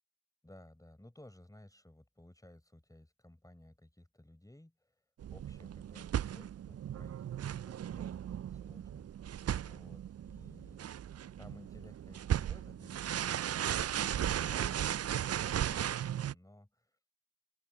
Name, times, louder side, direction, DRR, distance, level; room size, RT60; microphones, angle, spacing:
voice 1, 0.4-5.0 5.3-8.2 8.5-10.9 11.4-17.0, left 1 dB, 10° left, 7.6 m, -57 dB
sound 1, 5.2-16.3, right 10 dB, 35° right, 0.7 m, -36 dB
open air
figure-of-eight pair, 40°, 44 cm